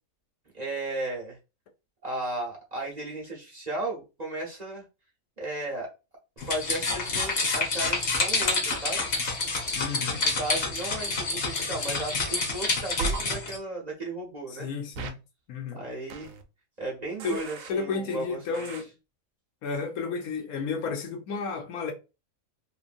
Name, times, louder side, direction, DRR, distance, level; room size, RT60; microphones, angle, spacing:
voice 1, 0.5-1.4 2.0-4.8 5.4-5.9 6.4-9.1 10.2-14.7 15.8-16.3 16.8-18.4, right 2 dB, 35° right, 0.8 m, -35 dB
sound 1, 6.4-13.6, left 3 dB, 55° left, 1.1 m, -28 dB
voice 2, 9.8-10.3 14.5-15.2 15.5-15.8 17.2-17.4 17.7-18.9 19.6-21.9, left 5 dB, 85° left, 1.2 m, -32 dB
sound 2, 13.0-13.2 14.9-15.1 16.1-16.4 17.2-17.7 18.5-18.8, right 4 dB, 75° right, 1.0 m, -34 dB
3.0 x 2.6 x 2.5 m
omnidirectional pair, 1.5 m